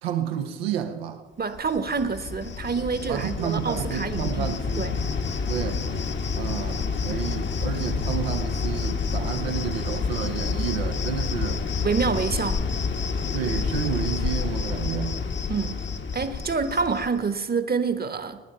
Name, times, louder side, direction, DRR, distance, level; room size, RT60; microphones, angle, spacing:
voice 1, 0.0-1.2 3.1-4.9 5.5-5.9 6.4-11.6 13.3-15.2, right 9 dB, 80° right, 1.0 m, -30 dB
voice 2, 1.4-5.0 11.8-12.7 15.5-15.8 16.1-18.4, right 5 dB, 30° right, 1.2 m, -27 dB
Cricket, 1.5-17.3, left 5 dB, 40° left, 1.1 m, -28 dB
18.5 x 9.5 x 5.5 m
figure-of-eight pair, 40°, 30 cm